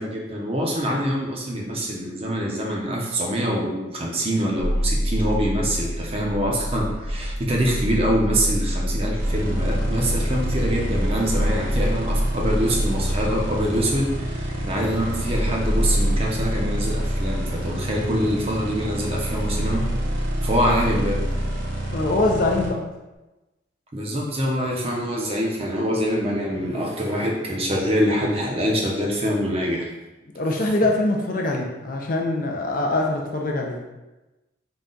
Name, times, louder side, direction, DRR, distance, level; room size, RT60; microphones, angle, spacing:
voice 1, 0.0-19.8 20.4-21.2 23.9-29.9, equal, 30° right, -2 dB, 0.6 m, -25 dB
sound 1, 4.6-16.5, equal, 20° left, 1.0 m, -27 dB
sound 2, 9.2-22.7, equal, 70° right, 0.8 m, -27 dB
voice 2, 21.9-22.8 30.3-33.8, left 2 dB, 45° left, 1 dB, 0.5 m, -23 dB
3.9 x 2.3 x 3.7 m, 1.1 s
head